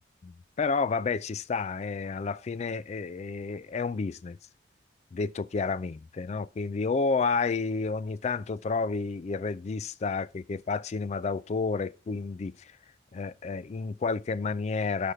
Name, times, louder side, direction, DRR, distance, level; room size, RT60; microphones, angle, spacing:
voice 1, 0.2-4.4 5.1-12.7 13.1-15.1, left 4 dB, 35° left, 0.3 m, -30 dB
6.4 x 5.0 x 5.5 m
head